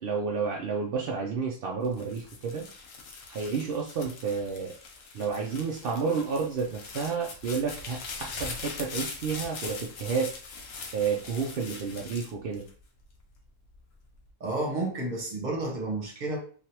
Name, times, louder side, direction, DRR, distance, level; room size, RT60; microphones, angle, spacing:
voice 1, 0.0-2.7 3.3-4.7 5.1-10.3 10.9-12.6, right 5 dB, 65° right, -1 dB, 0.6 m, -30 dB
sound 1, 1.8-13.2 13.7-14.3, left 4 dB, 75° left, 1.1 m, -41 dB
voice 2, 14.4-16.4, right 2 dB, 40° right, 0 dB, 0.9 m, -31 dB
3.3 x 2.4 x 2.8 m, 0.43 s
omnidirectional pair, 1.4 m